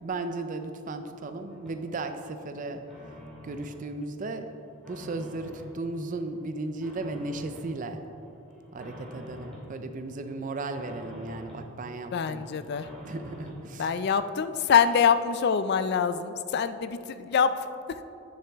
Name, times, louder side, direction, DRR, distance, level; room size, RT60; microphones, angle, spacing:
voice 1, 0.0-2.8 3.4-4.6 4.9-8.0 8.7-12.5 13.0-13.9, right 2 dB, 40° right, 8 dB, 0.4 m, -35 dB
sound 1, 0.9-1.8 2.2-3.8 4.2-5.8 6.1-7.7 8.1-9.7 10.1-11.7 12.1-13.6, left 1 dB, 5° left, 1.9 m, -47 dB
voice 2, 12.1-12.9 13.8-17.5 17.9-18.0, left 7 dB, 50° left, 12 dB, 0.3 m, -25 dB
8.7 x 7.1 x 3.4 m, 2.8 s
head